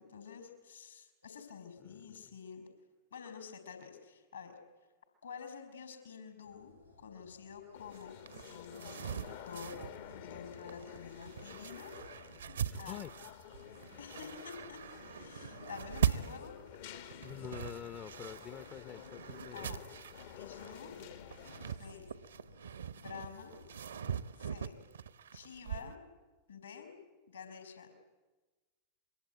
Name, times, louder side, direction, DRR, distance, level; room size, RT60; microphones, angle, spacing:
voice 1, 0.0-2.6 3.1-4.5 5.2-8.1 8.5-9.2 9.4-9.8 10.2-11.9 12.8-13.0 14.0-14.8 15.2-16.5 19.5-19.8 20.3-20.9 21.7-22.1 23.0-23.6 24.3-24.8 25.3-26.0 26.5-26.9 27.3-27.9, left 6 dB, 70° left, 7 dB, 5.1 m, -49 dB
voice 2, 1.8-2.3 12.7-13.1 17.2-19.8 21.5-21.9, left 10 dB, 35° left, 14 dB, 0.8 m, -47 dB
sound 1, 6.4-24.1, left 2 dB, 90° left, 3.8 m, -62 dB
sound 2, 7.7-21.8, left 10 dB, 55° left, 1.3 m, -51 dB
sound 3, 7.9-26.0, right 8 dB, 70° right, 0.9 m, -41 dB
27.0 x 23.0 x 9.3 m, 1.2 s
figure-of-eight pair, 90°, 0 cm